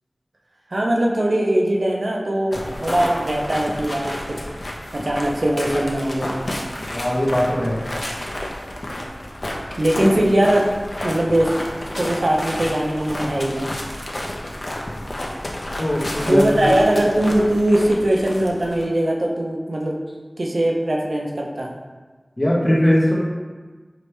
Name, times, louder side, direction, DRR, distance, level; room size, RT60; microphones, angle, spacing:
voice 1, 0.7-4.4 4.9-6.4 9.8-10.7 11.0-11.5 12.0-13.7 16.3-20.0 20.4-21.7, right 1 dB, 75° right, -1 dB, 0.5 m, -20 dB
sound 1, 2.5-18.9, left 1 dB, 60° left, 0.6 m, -31 dB
voice 2, 6.9-7.8 15.8-16.8 22.4-23.2, equal, 35° left, -4 dB, 1.0 m, -20 dB
4.6 x 3.1 x 3.2 m, 1.3 s
wide cardioid pair, 55°, 0 cm